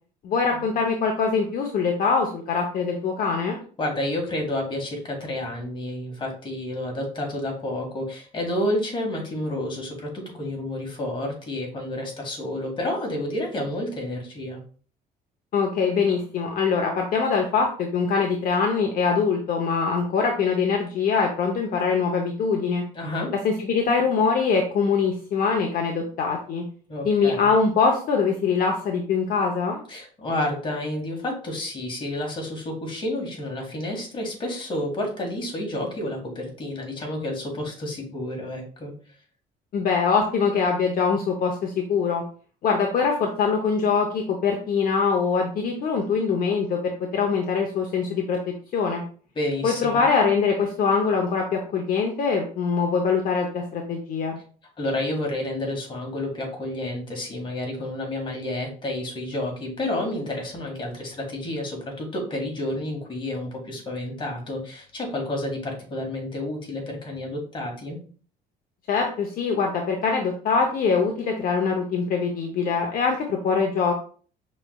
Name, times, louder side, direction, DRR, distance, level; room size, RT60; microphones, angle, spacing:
voice 1, 0.2-3.6 15.5-22.8 23.4-26.6 27.0-29.8 39.7-42.2 42.6-48.4 48.7-49.0 49.6-54.4 68.9-73.9, left 5 dB, 55° left, 2 dB, 0.7 m, -23 dB
voice 2, 3.8-14.6 22.9-23.3 26.9-27.5 29.9-38.9 49.3-50.0 54.8-68.0, left 1 dB, 30° left, 0 dB, 1.7 m, -30 dB
5.6 x 3.2 x 2.3 m, 0.42 s
cardioid pair, 110°, 17 cm